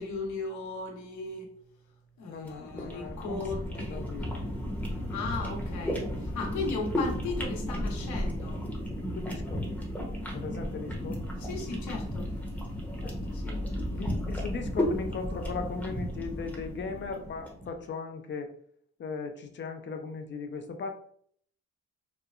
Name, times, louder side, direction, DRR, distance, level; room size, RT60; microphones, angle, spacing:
voice 1, 0.0-1.5 2.2-4.0 5.1-8.6 11.4-12.3 13.3-13.6, left 3 dB, 75° left, 1 dB, 0.8 m, -36 dB
voice 2, 2.3-4.4 9.1-9.7 10.3-11.2 13.0-13.1 13.9-18.5 19.0-20.9, left 4 dB, 40° left, 6 dB, 0.4 m, -38 dB
sound 1, 2.4-17.7, equal, 5° left, 0.7 m, -34 dB
2.9 x 2.2 x 2.3 m, 0.63 s
cardioid pair, 90°, 30 cm